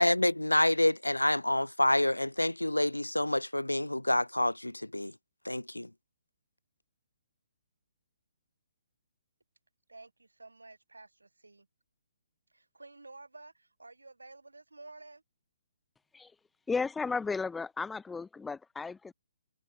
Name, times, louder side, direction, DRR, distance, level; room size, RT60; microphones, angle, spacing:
voice 1, 0.0-5.1 5.4-5.9, left 1 dB, 85° left, 0.5 m, -27 dB
voice 2, 9.9-11.7 12.5-15.2, right 2 dB, 80° right, 6.6 m, -52 dB
voice 3, 16.7-19.1, left 4 dB, 5° left, 0.6 m, -34 dB
figure-of-eight pair, 130°, 0 cm